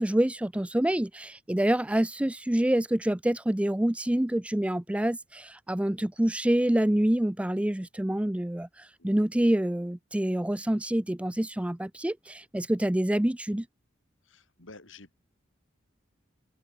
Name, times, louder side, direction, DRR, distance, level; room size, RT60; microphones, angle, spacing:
voice 1, 0.0-13.7, right 1 dB, 5° right, 0.4 m, -27 dB
voice 2, 14.2-15.2, left 3 dB, 80° left, 5.4 m, -51 dB
open air
head